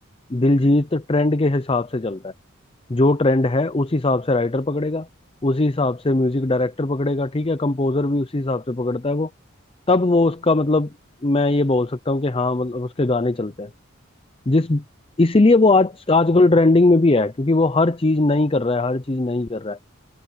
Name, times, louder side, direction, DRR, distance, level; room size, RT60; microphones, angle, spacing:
voice 1, 0.3-2.3 2.9-5.1 5.4-9.3 9.9-10.9 11.2-13.7 14.5-14.8 15.2-19.8, left 2 dB, 25° left, 0.6 m, -19 dB
head